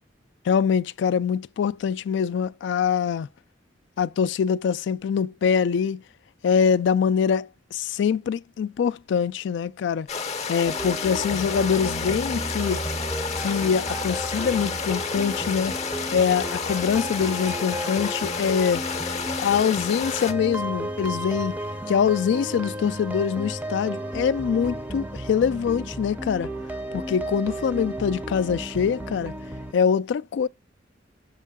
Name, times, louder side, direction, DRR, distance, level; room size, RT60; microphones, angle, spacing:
voice 1, 0.4-3.3 4.0-6.0 6.4-10.1 10.5-12.8 13.4-15.8 16.1-19.1 19.4-21.6 21.9-26.5 26.9-29.3 29.7-30.5, left 7 dB, 65° left, 0.3 m, -24 dB
sound 1, 10.1-20.3, left 5 dB, 35° left, 0.7 m, -31 dB
sound 2, 10.7-29.7, right 1 dB, 10° right, 0.5 m, -33 dB
6.5 x 4.5 x 3.5 m
head